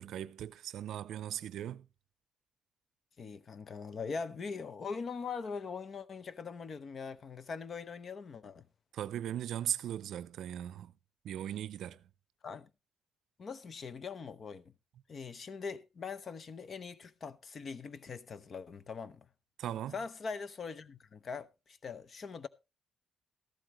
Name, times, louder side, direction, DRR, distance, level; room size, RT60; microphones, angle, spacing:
voice 1, 0.0-1.9 8.9-10.9 11.2-12.1 19.6-20.0, right 11 dB, 80° right, 0.5 m, -38 dB
voice 2, 3.2-8.7 12.4-12.7 13.4-14.6 15.1-19.3 19.9-22.5, left 5 dB, 45° left, 0.8 m, -42 dB
13.5 x 11.5 x 3.0 m
cardioid pair, 115°, 0 cm